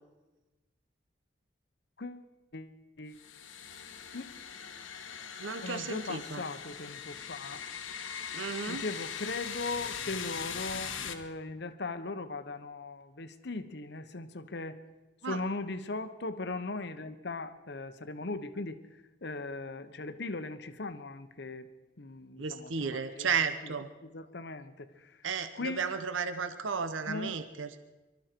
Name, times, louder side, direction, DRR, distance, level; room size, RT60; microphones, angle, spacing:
voice 1, 2.5-3.2 4.1-4.3 5.6-7.6 8.7-14.8 15.2-18.8 19.2-21.7 22.0-23.3 24.1-25.1 25.5-25.9 27.1-27.4, left 3 dB, 55° left, 11 dB, 0.9 m, -39 dB
sound 1, 3.1-11.1, left 7 dB, 85° left, 1.3 m, -41 dB
voice 2, 5.4-6.4 8.3-8.9 15.2-15.5 22.4-23.9 25.2-27.8, right 5 dB, 75° right, 10 dB, 0.9 m, -34 dB
24.0 x 13.0 x 4.5 m, 1.1 s
head